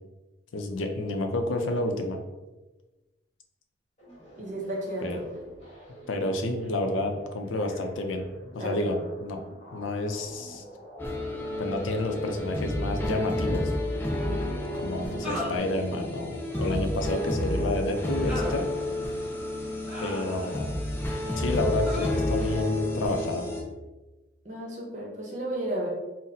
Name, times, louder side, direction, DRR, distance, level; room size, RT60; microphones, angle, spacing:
voice 1, 0.5-2.2 5.0-5.2 6.1-8.2 8.5-9.4 9.7-10.6 11.6-13.7 14.7-18.7 20.0-20.8 21.4-23.5, left 2 dB, 90° left, 4 dB, 0.5 m, -30 dB
sound 1, 4.0-15.6, right 1 dB, 35° left, 0.9 m, -46 dB
voice 2, 4.4-5.2 8.6-9.0 14.0-14.4 24.4-25.9, right 1 dB, 40° right, -2 dB, 0.7 m, -33 dB
sound 2, 11.0-23.6, left 1 dB, 10° left, 0.4 m, -30 dB
sound 3, 13.3-13.5 15.2-15.6 16.5-16.9 18.3-18.6 19.9-20.7 21.8-22.1, left 1 dB, 5° right, 0.8 m, -35 dB
3.9 x 2.0 x 2.6 m, 1.1 s
head